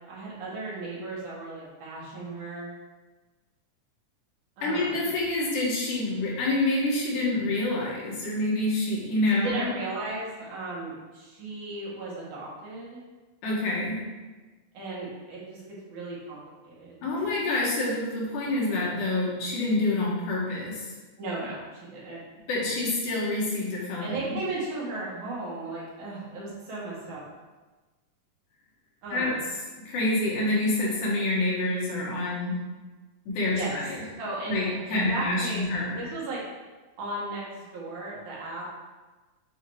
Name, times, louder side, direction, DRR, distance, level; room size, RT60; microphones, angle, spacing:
voice 1, 0.1-2.7 4.6-5.1 9.3-13.0 14.7-17.1 21.2-22.2 24.0-27.2 29.0-29.4 33.5-33.8 34.2-35.6 36.0-36.4 37.0-38.7, right 2 dB, 80° right, -6 dB, 3.1 m, -36 dB
voice 2, 4.6-9.7 13.4-14.0 17.0-20.9 22.5-24.4 29.1-29.3 29.9-32.6 33.3-34.0 34.5-36.0, left 2 dB, 85° left, -5 dB, 3.0 m, -27 dB
7.6 x 2.9 x 4.7 m, 1.3 s
omnidirectional pair, 3.5 m